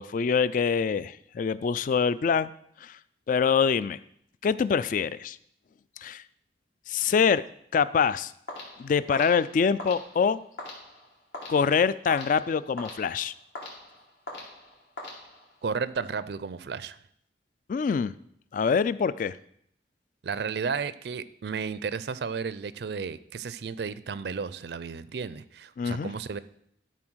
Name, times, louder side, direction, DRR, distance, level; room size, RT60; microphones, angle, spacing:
voice 1, 0.0-2.5 2.8-2.9 3.3-4.0 4.4-5.4 6.0-6.2 6.9-7.4 7.7-8.3 8.8-10.4 11.5-13.3 17.7-18.1 18.5-19.4 25.8-26.1, left 6 dB, 50° left, 17 dB, 0.3 m, -25 dB
sound 1, 8.5-15.7, left 1 dB, 70° left, 2.8 m, -43 dB
voice 2, 15.6-17.0 20.2-26.4, right 5 dB, 65° right, 15 dB, 0.4 m, -33 dB
12.5 x 4.2 x 6.2 m, 0.69 s
head